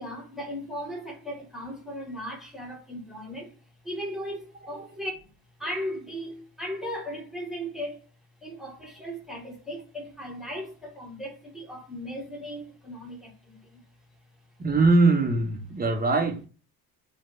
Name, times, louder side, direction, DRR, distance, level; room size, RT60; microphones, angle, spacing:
voice 1, 0.0-3.5 3.8-5.1 5.6-7.9 8.4-13.3, equal, ahead, 1.4 m, -37 dB
voice 2, 14.6-16.4, right 3 dB, 20° right, 0.8 m, -22 dB
4.3 x 2.6 x 2.4 m
hypercardioid pair, 60°, 44 cm